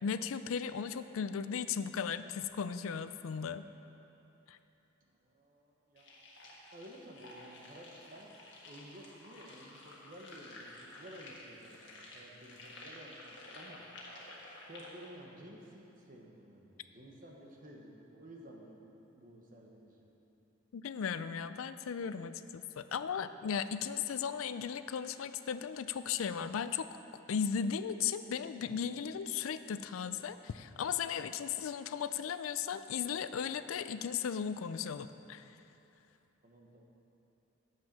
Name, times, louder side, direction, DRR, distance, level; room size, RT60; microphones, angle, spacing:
voice 1, 0.0-3.6 4.5-4.6 20.7-26.9 27.3-35.4, left 7 dB, 85° left, 12 dB, 0.4 m, -36 dB
voice 2, 5.2-6.2 6.7-8.3 8.6-13.8 14.6-20.1 36.4-36.8, equal, 40° right, -1 dB, 1.1 m, -53 dB
sound 1, 6.0-15.1, left 1 dB, 60° left, 1.5 m, -52 dB
8.9 x 7.5 x 6.0 m, 2.9 s
head